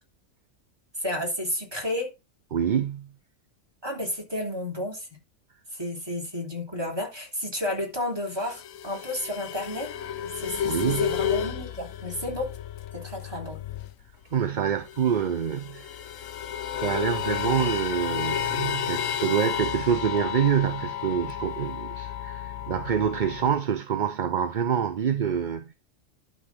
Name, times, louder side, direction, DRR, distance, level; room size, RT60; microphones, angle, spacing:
voice 1, 1.0-2.1 3.8-5.1 5.7-9.9 10.2-12.5 12.9-13.6, left 1 dB, 20° right, 3.3 m, -32 dB
voice 2, 2.5-3.1 10.6-11.1 14.3-16.2 16.7-25.7, right 8 dB, 45° right, 0.7 m, -26 dB
sound 1, 8.3-14.1 14.4-14.5 14.7-23.6, left 9 dB, 85° left, 1.1 m, -32 dB
12.0 x 4.1 x 6.0 m
omnidirectional pair, 1.3 m